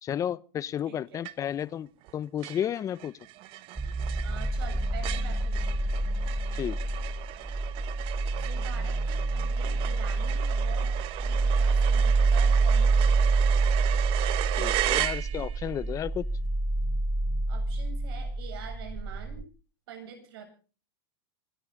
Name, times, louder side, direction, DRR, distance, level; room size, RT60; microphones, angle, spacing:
voice 1, 0.0-3.1 6.5-6.8 14.5-16.3, left 10 dB, 25° left, 0.7 m, -32 dB
voice 2, 0.8-1.2 4.2-6.2 8.4-13.2 17.5-19.5 19.9-20.4, right 7 dB, 75° right, 7.3 m, -45 dB
sound 1, 1.2-1.7 2.0-2.1 2.4-15.7, right 15 dB, 45° right, 1.1 m, -36 dB
sound 2, 3.8-19.4, right 3 dB, 10° right, 1.0 m, -27 dB
26.0 x 13.0 x 3.8 m
supercardioid pair, 125°, 13 cm